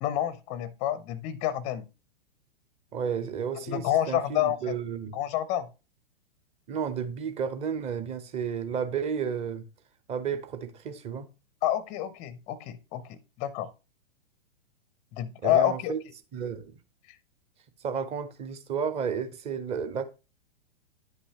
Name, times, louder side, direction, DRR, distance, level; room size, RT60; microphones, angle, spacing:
voice 1, 0.0-1.9 3.5-4.7 5.1-5.7 11.6-13.7 15.1-15.9, left 12 dB, 25° left, 0.5 m, -28 dB
voice 2, 2.9-5.2 6.7-9.6 10.1-11.3 15.4-16.0 16.3-16.8 17.8-20.1, right 7 dB, 20° right, 0.7 m, -32 dB
9.9 x 5.5 x 2.8 m
figure-of-eight pair, 105°, 30 cm